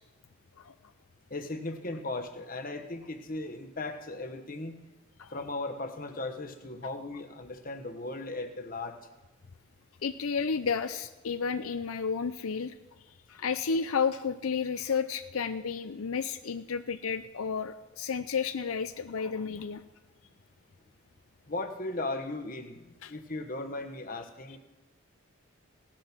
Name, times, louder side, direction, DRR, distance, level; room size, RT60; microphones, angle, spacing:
voice 1, 1.3-4.7 5.3-9.0 21.5-22.8 23.1-24.6, left 2 dB, 40° left, 6 dB, 1.1 m, -37 dB
voice 2, 10.0-12.7 13.3-19.8 23.0-23.1, left 5 dB, 80° left, 10 dB, 0.6 m, -32 dB
17.5 x 9.0 x 6.0 m, 1.1 s
head